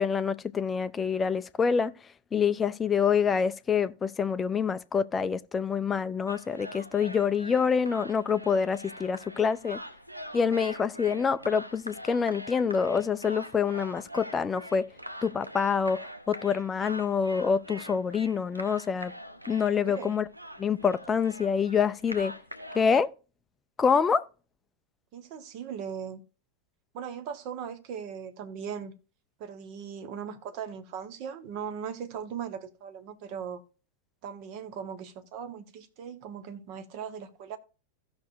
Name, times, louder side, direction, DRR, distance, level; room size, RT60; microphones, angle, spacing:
voice 1, 0.0-1.9 2.3-9.8 10.3-14.9 15.2-19.1 19.5-20.2 20.6-22.3 22.7-23.1 23.8-24.3, left 6 dB, 20° left, 0.5 m, -26 dB
sound 1, 6.3-23.0, equal, 90° right, 0.7 m, -44 dB
voice 2, 19.8-20.2 25.1-26.2 26.9-28.9 29.4-33.6 34.2-37.6, right 7 dB, 45° right, 1.3 m, -39 dB
16.0 x 6.0 x 2.7 m
figure-of-eight pair, 90°, 0 cm